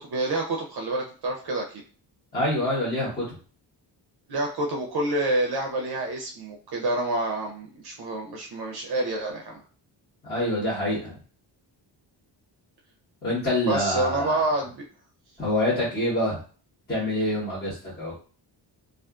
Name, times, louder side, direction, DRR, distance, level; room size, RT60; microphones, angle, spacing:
voice 1, 0.0-1.6 4.3-9.6 13.6-14.8, right 2 dB, 55° right, 0 dB, 0.5 m, -28 dB
voice 2, 2.3-3.3 10.2-11.2 13.2-14.4 15.4-16.4 16.9-18.1, left 1 dB, 20° left, -10 dB, 1.0 m, -26 dB
2.4 x 2.4 x 2.3 m, 0.39 s
wide cardioid pair, 155°, 45 cm